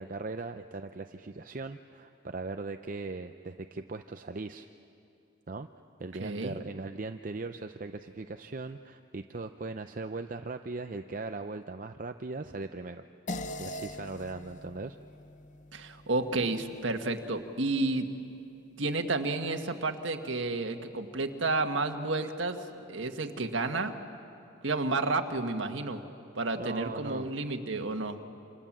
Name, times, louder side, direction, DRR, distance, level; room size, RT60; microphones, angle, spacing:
voice 1, 0.0-4.7 5.5-5.7 6.0-13.0 13.6-15.0 26.6-27.3, right 3 dB, 40° right, 7 dB, 0.6 m, -39 dB
voice 2, 6.2-6.6 15.7-18.1 18.8-22.6 22.9-24.0 24.6-26.0 26.3-28.2, right 3 dB, 75° right, 5 dB, 1.5 m, -31 dB
sound 1, 13.3-18.0, left 1 dB, 40° left, 0.7 m, -43 dB
28.0 x 27.0 x 7.4 m, 2.7 s
head